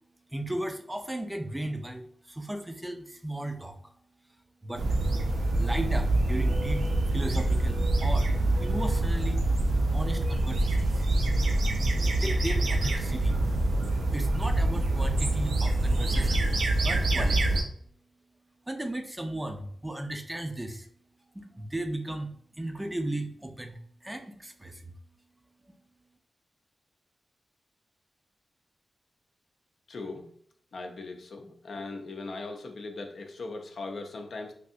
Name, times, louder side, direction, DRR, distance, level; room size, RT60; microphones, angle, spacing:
voice 1, 0.3-3.9 4.3-4.4 4.6-5.0 5.6-8.3 8.6-9.4 9.9-11.1 12.1-13.4 14.1-17.6 18.7-20.9 21.3-24.9 25.7-25.8, right 1 dB, 15° right, 5 dB, 0.4 m, -36 dB
sound 1, 4.7-17.6, right 2 dB, 85° right, 0.5 m, -25 dB
voice 2, 29.9-30.3 30.7-34.5, left 3 dB, 70° left, 3 dB, 0.5 m, -39 dB
3.2 x 2.7 x 2.5 m, 0.63 s
cardioid pair, 70°, 0 cm